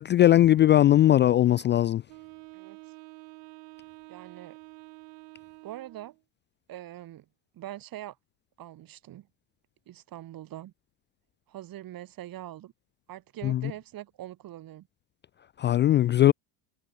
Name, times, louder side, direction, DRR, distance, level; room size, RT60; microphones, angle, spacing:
voice 1, 0.0-2.0 13.4-13.6 15.6-16.3, left 12 dB, 25° left, 0.4 m, -19 dB
Wind instrument woodwind instrument, 2.1-6.2, right 32 dB, 80° right, 4.9 m, -48 dB
voice 2, 4.1-4.6 5.6-6.1 6.7-7.3 7.5-8.2 8.6-9.3 9.9-10.7 11.5-12.7 13.1-14.9, right 13 dB, 45° right, 5.9 m, -43 dB
cardioid pair, 140°, 50 cm